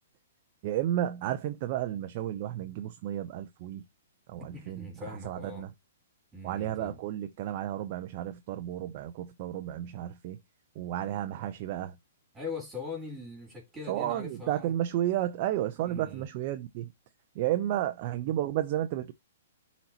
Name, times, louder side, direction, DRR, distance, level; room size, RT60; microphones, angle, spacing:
voice 1, 0.6-3.8 4.3-5.7 6.4-10.4 10.8-12.0 13.9-16.9 17.3-19.1, right 12 dB, 45° right, 0.7 m, -32 dB
voice 2, 4.4-5.6 6.3-7.0 12.3-14.7 15.8-16.3, left 4 dB, 15° right, 3.9 m, -41 dB
11.5 x 4.2 x 2.9 m
hypercardioid pair, 130°, 0 cm